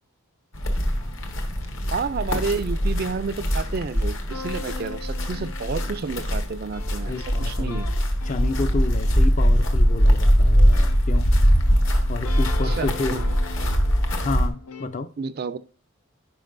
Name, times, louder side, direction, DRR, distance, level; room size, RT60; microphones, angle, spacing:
sound 1, 0.5-14.5, equal, 60° left, 1.4 m, -22 dB
voice 1, 1.9-7.9 11.9-12.0 12.7-13.3 15.2-15.6, right 5 dB, 45° right, 0.4 m, -30 dB
sound 2, 4.3-14.9, left 4 dB, 90° left, 0.8 m, -41 dB
voice 2, 7.0-7.9 8.2-11.3 12.1-13.2 14.2-15.1, left 3 dB, 35° left, 0.4 m, -30 dB
10.5 x 5.0 x 2.5 m
head